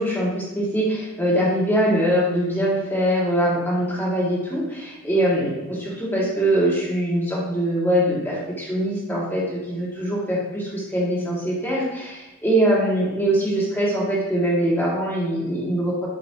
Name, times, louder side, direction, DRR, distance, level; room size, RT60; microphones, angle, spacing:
voice 1, 0.0-16.1, right 1 dB, 10° left, -6 dB, 2.0 m, -23 dB
8.4 x 6.7 x 2.9 m, 1.0 s
head